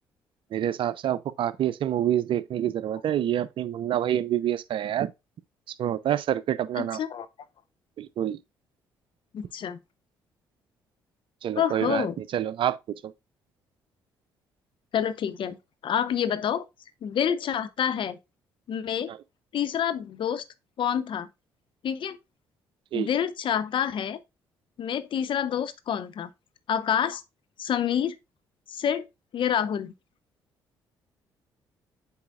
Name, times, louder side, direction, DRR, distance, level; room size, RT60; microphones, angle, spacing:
voice 1, 0.5-5.1 5.8-7.0 8.0-8.4 11.4-12.8 13.0-13.1 19.1-19.2 22.9-23.1, right 11 dB, 60° right, 0.6 m, -27 dB
voice 2, 6.8-7.3 9.3-9.8 11.5-12.1 14.9-15.6 15.8-16.6 17.0-18.2 18.7-19.1 19.5-20.4 20.8-21.3 21.8-22.2 22.9-24.2 24.8-26.3 26.7-27.2 27.6-28.1 28.7-29.1 29.3-29.9, left 9 dB, 55° left, 0.8 m, -27 dB
8.3 x 4.9 x 2.4 m
hypercardioid pair, 50°, 10 cm